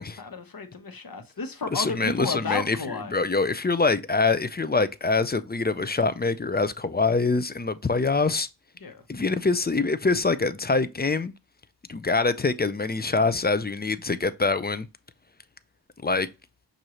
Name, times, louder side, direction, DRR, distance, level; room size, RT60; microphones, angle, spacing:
voice 1, 0.0-3.1 8.8-9.0, left 4 dB, 55° left, 1.1 m, -33 dB
voice 2, 1.7-2.8 3.1-8.5 9.1-11.3 11.9-14.9 16.0-16.3, left 3 dB, 25° left, 0.4 m, -24 dB
6.3 x 2.7 x 2.9 m
wide cardioid pair, 40°, 42 cm